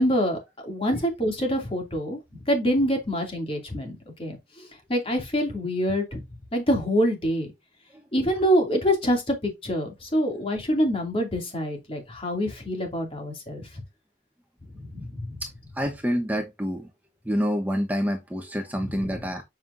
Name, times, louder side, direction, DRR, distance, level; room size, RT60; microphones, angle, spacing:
voice 1, 0.0-2.2 2.5-6.2 6.5-7.5 8.1-13.7 14.7-15.3, equal, 30° left, 2.5 m, -26 dB
voice 2, 15.7-16.9 17.2-19.4, equal, 10° right, 0.9 m, -27 dB
7.5 x 5.6 x 2.6 m
head